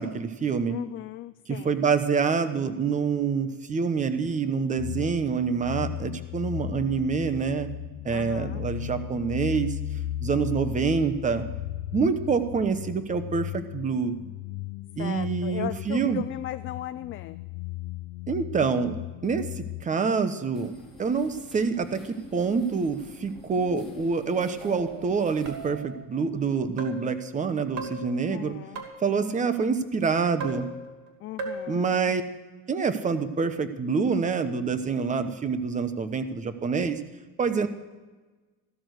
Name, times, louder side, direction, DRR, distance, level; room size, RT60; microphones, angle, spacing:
voice 1, 0.0-0.8 1.5-7.7 8.0-9.8 10.2-11.4 11.9-14.2 15.0-16.2 18.3-19.0 19.2-20.7 21.0-28.5 29.0-30.7 31.7-32.2 32.7-37.0 37.4-37.7, right 5 dB, 20° right, 10 dB, 1.0 m, -26 dB
voice 2, 0.7-1.8 8.1-8.6 15.0-17.4 28.3-28.8 31.2-32.1, left 13 dB, 35° left, 11 dB, 0.4 m, -37 dB
sound 1, 4.8-19.9, left 14 dB, 75° left, 0.6 m, -36 dB
sound 2, 20.5-25.7, left 3 dB, ahead, 3.9 m, -48 dB
sound 3, 24.6-25.0 25.4-26.0 26.8-27.2 27.8-29.2 30.4-31.1 31.4-31.8, right 3 dB, 50° right, 2.6 m, -37 dB
15.5 x 12.5 x 6.4 m, 1.3 s
cardioid pair, 150°, 36 cm